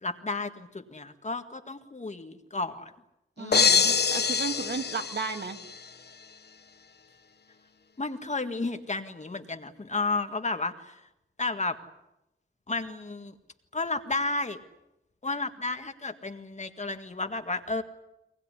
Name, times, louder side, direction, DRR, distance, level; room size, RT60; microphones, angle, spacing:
voice 1, 0.0-2.9 3.4-4.0 8.0-11.0 11.4-11.8 12.7-13.3 13.7-14.6 15.2-17.8, left 3 dB, 35° left, 7 dB, 1.8 m, -32 dB
voice 2, 3.4-5.6, right 4 dB, 60° right, 7 dB, 2.1 m, -34 dB
sound 1, 3.5-5.8, left 5 dB, 55° left, 1.2 m, -25 dB
24.5 x 19.5 x 9.9 m, 0.89 s
wide cardioid pair, 95°, 20 cm